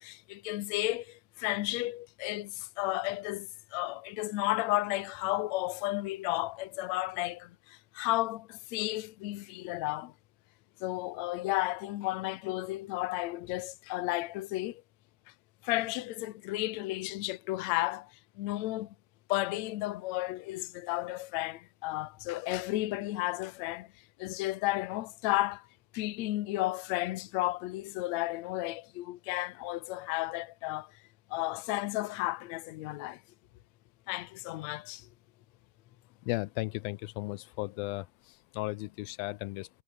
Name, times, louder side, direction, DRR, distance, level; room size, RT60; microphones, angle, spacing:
voice 1, 0.0-10.1 10.8-14.8 15.6-19.0 19.3-23.9 24.2-25.7 25.9-30.9 31.3-33.2 34.1-35.1, left 18 dB, 70° left, 1.8 m, -33 dB
voice 2, 36.2-39.7, left 20 dB, 90° left, 2.5 m, -36 dB
omnidirectional pair, 4.1 m